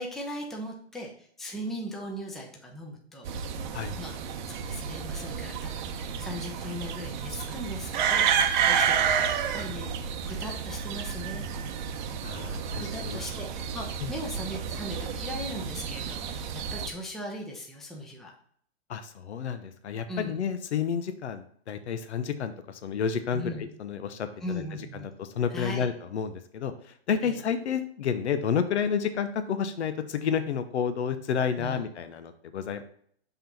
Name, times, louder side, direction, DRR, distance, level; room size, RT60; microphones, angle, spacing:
voice 1, 0.0-3.3 4.0-4.1 4.5-11.5 12.8-18.3 20.1-20.4 23.3-23.6 24.4-25.1 25.5-25.9 27.2-27.4 31.6-31.8, equal, ahead, -1 dB, 0.6 m, -39 dB
sound 1, 3.2-16.9, right 7 dB, 45° right, 0.7 m, -30 dB
voice 2, 12.2-13.3 14.0-14.1 18.9-24.6 24.9-32.8, left 7 dB, 85° left, 9 dB, 0.7 m, -30 dB
5.7 x 3.6 x 5.6 m, 0.62 s
hypercardioid pair, 140°, 33 cm